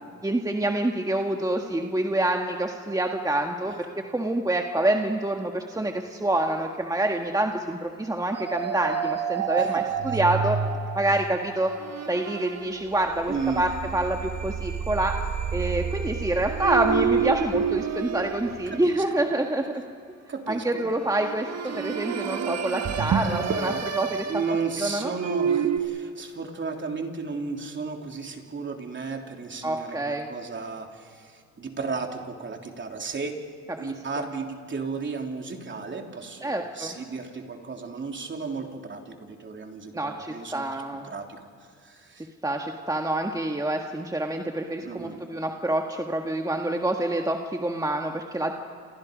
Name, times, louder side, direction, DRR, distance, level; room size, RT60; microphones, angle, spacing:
voice 1, 0.2-3.9 4.1-10.6 10.9-11.7 12.1-15.1 15.5-19.8 20.5-24.2 24.8-25.1 29.6-30.3 33.8-33.9 36.4-36.9 39.9-41.1 42.4-48.5, right 1 dB, 10° right, 3 dB, 1.7 m, -27 dB
sound 1, 8.4-19.5 21.0-25.8, right 7 dB, 60° right, 1.7 m, -29 dB
voice 2, 9.6-10.2 13.3-13.6 18.7-19.0 20.3-20.9 21.7-21.8 23.2-23.8 24.2-33.4 33.8-41.4 41.8-42.3 44.8-45.2, right 4 dB, 40° right, 3 dB, 3.4 m, -34 dB
29.0 x 27.5 x 5.2 m, 2.3 s
cardioid pair, 90°, 30 cm